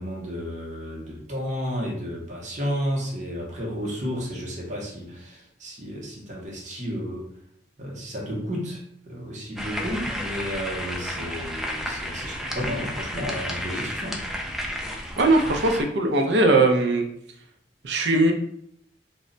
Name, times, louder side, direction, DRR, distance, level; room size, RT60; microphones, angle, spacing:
voice 1, 0.0-7.3 7.8-14.2, equal, 45° right, -2 dB, 0.8 m, -32 dB
sound 1, 9.6-15.8, equal, ahead, 0.3 m, -32 dB
voice 2, 15.2-17.0 17.8-18.3, right 2 dB, 70° right, 3 dB, 0.5 m, -20 dB
2.2 x 2.0 x 3.7 m, 0.69 s
head